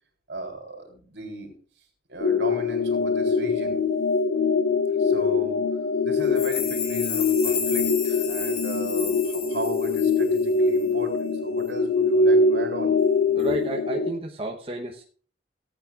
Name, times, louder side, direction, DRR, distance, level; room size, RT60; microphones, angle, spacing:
voice 1, 0.3-1.6 2.1-3.8 5.0-5.7 6.0-13.0, right 2 dB, 70° right, 3 dB, 3.8 m, -36 dB
sound 1, 2.2-14.1, left 4 dB, 75° left, 2.3 m, -23 dB
sound 2, 6.2-10.5 10.8-10.9, left 6 dB, 55° left, 3.3 m, -32 dB
voice 2, 13.3-15.0, right 2 dB, 30° right, 0 dB, 1.0 m, -31 dB
17.5 x 8.7 x 2.5 m, 0.43 s
head